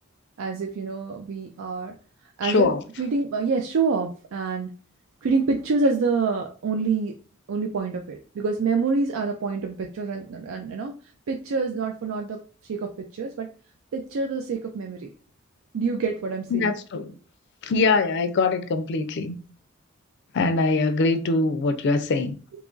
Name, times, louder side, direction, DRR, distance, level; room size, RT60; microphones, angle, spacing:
voice 1, 0.4-2.0 2.4-4.7 5.2-7.1 7.5-10.9 11.3-12.4 12.7-13.5 13.9-15.1 15.7-16.7, right 4 dB, 70° right, 0.4 m, -26 dB
voice 2, 2.4-2.8 16.5-17.1 17.6-19.3 20.3-22.4, left 3 dB, 55° left, 0.4 m, -23 dB
2.9 x 2.4 x 3.7 m
head